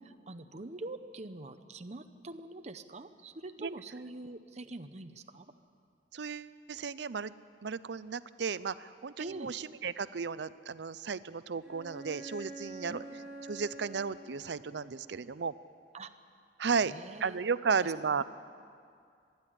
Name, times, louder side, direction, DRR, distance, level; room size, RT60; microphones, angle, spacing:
voice 1, 0.0-5.5 9.2-9.5 12.9-13.1 15.9-16.1 16.8-17.9, right 2 dB, 40° right, 8 dB, 0.8 m, -45 dB
voice 2, 6.1-7.3 7.6-13.0 13.5-15.5 16.6-16.9 17.2-18.2, right 5 dB, 70° right, 16 dB, 0.6 m, -34 dB
Bowed string instrument, 11.6-15.1, right 2 dB, 5° right, 7.1 m, -47 dB
25.0 x 10.5 x 10.0 m, 2.3 s
head